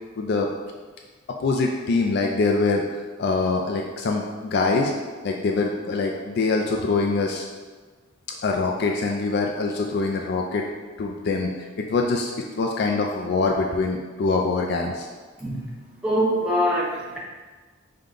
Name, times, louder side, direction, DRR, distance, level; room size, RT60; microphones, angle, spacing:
voice 1, 0.2-0.5 1.4-4.9 5.2-7.5 8.4-10.6 11.0-11.5 11.8-12.3 12.6-15.1, left 3 dB, 55° left, 1 dB, 0.3 m, -24 dB
voice 2, 15.4-15.7 16.0-17.2, equal, 5° right, -6 dB, 0.7 m, -23 dB
5.2 x 2.2 x 3.7 m, 1.4 s
head